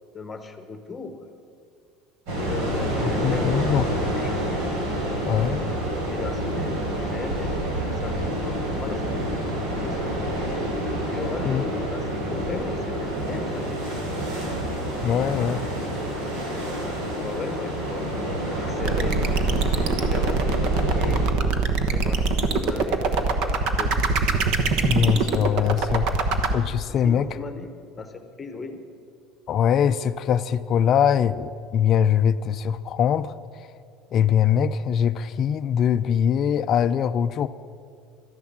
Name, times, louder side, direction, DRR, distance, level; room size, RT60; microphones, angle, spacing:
voice 1, 0.1-1.3 2.3-4.3 6.1-10.4 11.1-14.5 16.7-18.1 18.5-21.2 21.9-23.9 26.9-28.8, left 4 dB, 20° left, 8 dB, 1.0 m, -37 dB
sound 1, 2.3-21.3, equal, 80° right, 4.4 m, -28 dB
voice 2, 3.0-3.9 5.3-5.7 11.4-11.6 15.0-15.6 24.8-26.1 26.5-27.3 29.5-33.3 34.1-37.5, left 8 dB, 35° left, 10 dB, 0.4 m, -22 dB
sound 2, 18.8-26.5, right 4 dB, 60° right, 1.1 m, -23 dB
12.5 x 11.0 x 7.4 m, 2.2 s
cardioid pair, 150°, 0 cm